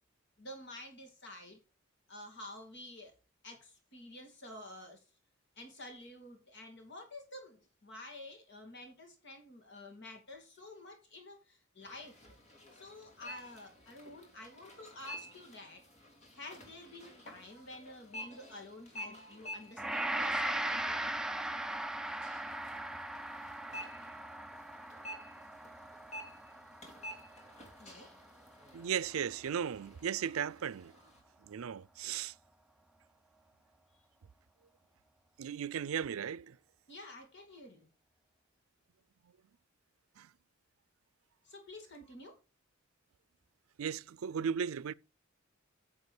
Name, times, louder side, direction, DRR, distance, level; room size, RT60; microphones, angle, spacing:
voice 1, 0.4-1.6 2.1-3.1 3.4-5.0 5.5-12.2 12.7-15.8 16.3-21.0 27.8-28.1 36.9-37.9 41.4-42.4, left 1 dB, 60° left, 2.8 m, -50 dB
sound 1, 11.8-31.2, equal, 35° left, 3.0 m, -51 dB
Gong, 19.8-29.0, right 1 dB, 5° right, 0.5 m, -39 dB
voice 2, 28.7-30.9 31.5-32.3 35.4-36.6 40.2-40.3 43.8-44.9, right 8 dB, 90° right, 0.4 m, -36 dB
9.6 x 7.2 x 4.8 m
head